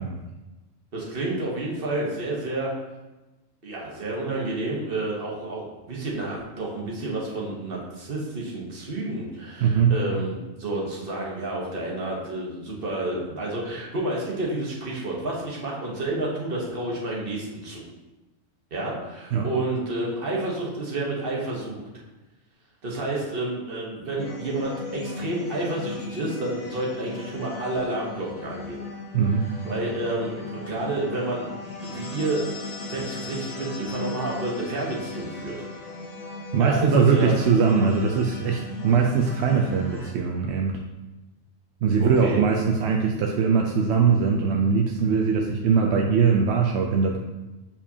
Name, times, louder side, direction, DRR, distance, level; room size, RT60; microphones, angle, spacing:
voice 1, 0.9-2.7 3.6-17.9 18.7-21.8 22.8-28.8 29.6-31.5 31.8-32.5 32.8-35.6 36.6-37.4 42.0-42.4, right 2 dB, 45° right, -3 dB, 1.3 m, -30 dB
voice 2, 9.6-10.0 19.3-19.5 29.1-29.5 36.5-40.8 41.8-47.2, right 5 dB, 65° right, 1 dB, 0.7 m, -21 dB
sound 1, 24.2-40.1, left 3 dB, 35° left, 0.7 m, -37 dB
7.0 x 4.9 x 2.8 m, 1.1 s
omnidirectional pair, 1.4 m